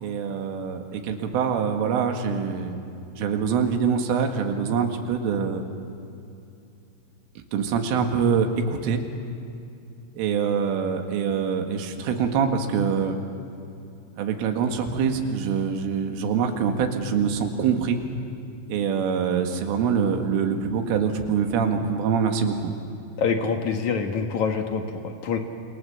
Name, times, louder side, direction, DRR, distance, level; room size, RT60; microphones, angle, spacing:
voice 1, 0.0-2.8 3.2-5.7 7.5-9.0 10.2-13.2 14.2-18.0 18.7-22.7, right 6 dB, 85° right, 4 dB, 4.5 m, -24 dB
voice 2, 23.2-25.4, left 5 dB, 65° left, 4 dB, 1.9 m, -26 dB
29.5 x 26.5 x 7.3 m, 2.6 s
omnidirectional pair, 5.6 m